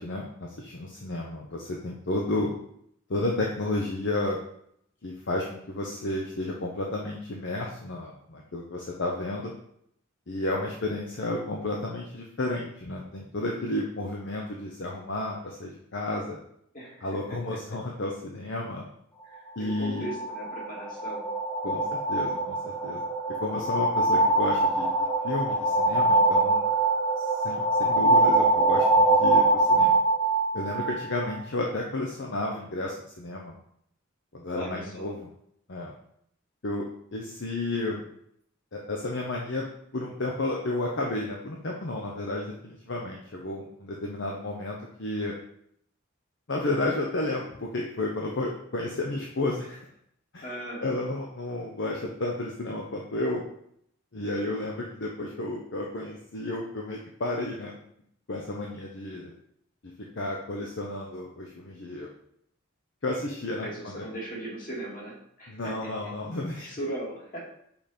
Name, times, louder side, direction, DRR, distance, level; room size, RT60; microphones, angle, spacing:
voice 1, 0.0-2.5 3.1-4.4 5.0-9.5 10.3-16.4 17.0-18.8 19.6-20.0 21.6-23.0 23.3-26.7 27.2-30.0 30.5-33.5 34.3-35.2 35.7-35.9 36.6-36.8 37.1-38.0 38.7-39.6 39.9-45.3 46.5-49.8 50.3-50.5 50.8-53.4 54.1-57.8 58.3-59.3 60.1-62.1 63.0-64.1 65.5-66.7, left 2 dB, 60° left, -1 dB, 0.8 m, -32 dB
voice 2, 16.7-17.4 19.2-21.2 34.5-35.1 50.4-50.9 63.6-65.7 66.6-67.4, right 1 dB, 40° left, -5 dB, 2.5 m, -38 dB
sound 1, 19.7-31.4, right 2 dB, 10° left, 0.4 m, -24 dB
5.6 x 5.2 x 4.3 m, 0.71 s
head